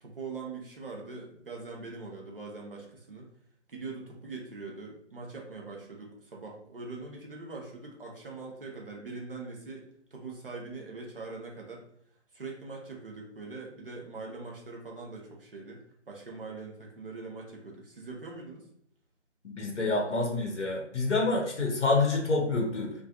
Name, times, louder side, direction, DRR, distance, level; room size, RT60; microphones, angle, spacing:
voice 1, 0.0-3.3 3.7-11.8 12.3-15.8 16.1-18.7, right 3 dB, 50° right, -1 dB, 0.7 m, -42 dB
voice 2, 19.4-22.9, left 3 dB, 75° left, 1 dB, 0.7 m, -27 dB
2.5 x 2.4 x 2.3 m, 0.69 s
figure-of-eight pair, 155°, 36 cm